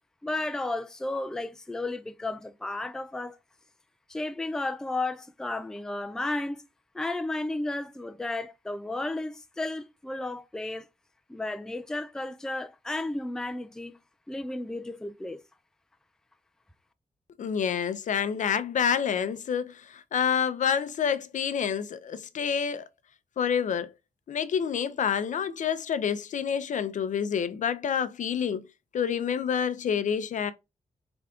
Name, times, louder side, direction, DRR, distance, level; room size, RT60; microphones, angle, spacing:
voice 1, 0.2-3.4 4.1-6.6 6.9-10.9 11.3-14.0 14.3-15.4, left 2 dB, 5° left, 0.3 m, -33 dB
voice 2, 17.4-22.8 23.4-23.9 24.3-28.6 28.9-30.5, left 7 dB, 70° left, 0.5 m, -28 dB
5.0 x 3.4 x 2.4 m
wide cardioid pair, 130°, 14 cm